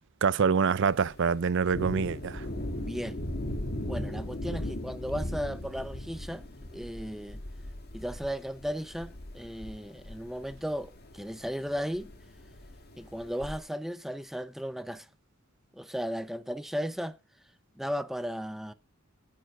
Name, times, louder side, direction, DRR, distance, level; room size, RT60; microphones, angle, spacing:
voice 1, 0.2-2.5, right 6 dB, 60° right, 0.5 m, -26 dB
Thunder, 0.9-13.6, left 1 dB, 50° left, 1.8 m, -39 dB
voice 2, 2.8-3.2 3.9-7.4 7.9-12.1 13.0-15.1 15.8-17.2 17.8-18.7, equal, ahead, 0.6 m, -35 dB
9.4 x 9.0 x 6.0 m
head